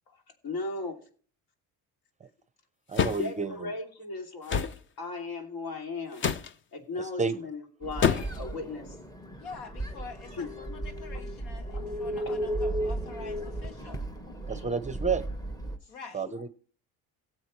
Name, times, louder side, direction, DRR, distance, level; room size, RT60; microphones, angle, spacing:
voice 1, 0.1-1.0 3.1-4.7 5.0-6.3 6.7-9.0 10.3-10.5 11.7-12.4 14.5-14.7 15.8-15.9, left 3 dB, 65° left, 3 dB, 2.8 m, -37 dB
sound 1, 2.9-3.3 4.5-4.8 6.2-6.5 8.0-8.4, left 7 dB, 30° left, 0.6 m, -26 dB
voice 2, 2.9-3.7 7.2-7.4 14.5-15.2 16.1-16.5, right 5 dB, 20° right, 12 dB, 0.6 m, -30 dB
sound 2, 7.8-15.8, right 1 dB, 10° left, 1.1 m, -35 dB
voice 3, 9.4-14.1 15.9-16.2, left 4 dB, 90° left, 5 dB, 2.2 m, -46 dB
18.0 x 7.6 x 3.2 m, 0.42 s
cardioid pair, 125°, 38 cm